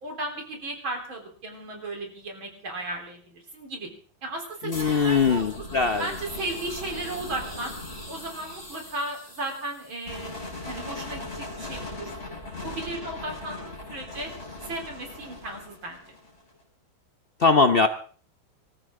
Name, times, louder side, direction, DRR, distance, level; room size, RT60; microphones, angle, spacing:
voice 1, 0.0-3.9 4.2-5.5 6.0-7.7 8.1-12.3 12.6-14.3 14.6-16.0, right 2 dB, 80° right, 2 dB, 4.5 m, -35 dB
voice 2, 4.6-6.1 17.4-17.9, left 4 dB, 75° left, 8 dB, 0.5 m, -21 dB
sound 1, 4.7-16.5, left 2 dB, 30° left, 5.5 m, -39 dB
25.5 x 13.5 x 3.7 m, 0.43 s
omnidirectional pair, 2.2 m